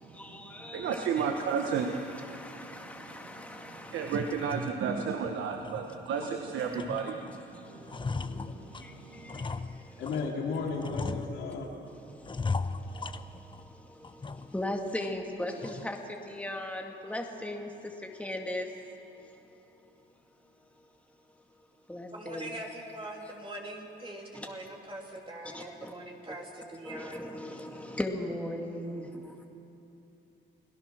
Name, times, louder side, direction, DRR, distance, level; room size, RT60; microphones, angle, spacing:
voice 1, 0.0-4.5 7.4-10.0 12.0-18.7 19.2-19.4 21.9-22.6 25.5-25.9 26.3-26.4 26.8-29.4, left 1 dB, 5° left, 2 dB, 2.2 m, -39 dB
voice 2, 0.7-2.0 2.3-2.6 3.9-8.4 9.0-9.3, right 6 dB, 80° right, 3 dB, 1.4 m, -32 dB
sound 1, 4.3-4.4 4.9-5.0 5.5-6.4 6.7-7.4 7.7-10.3 10.8-11.7 12.2-13.7 14.0-14.7 15.0-15.1 15.6-16.0, left 4 dB, 25° left, 0.8 m, -37 dB
voice 3, 10.0-11.7, left 4 dB, 80° left, -1 dB, 3.7 m, -34 dB
voice 4, 22.1-27.3, right 1 dB, 25° right, -1 dB, 3.2 m, -42 dB
29.0 x 18.0 x 6.2 m, 3.0 s
cardioid pair, 90°, 20 cm